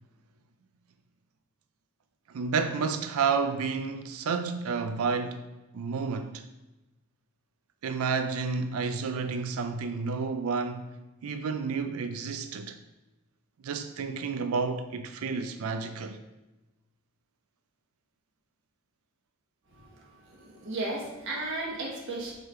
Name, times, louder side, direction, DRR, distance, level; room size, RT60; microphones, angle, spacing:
voice 1, 2.3-5.4 5.7-6.4 7.8-10.9 11.2-12.8 13.6-16.2, right 5 dB, 90° right, 0.4 m, -30 dB
voice 2, 20.1-22.3, right 2 dB, 60° right, 1.3 m, -35 dB
6.6 x 3.3 x 4.4 m
head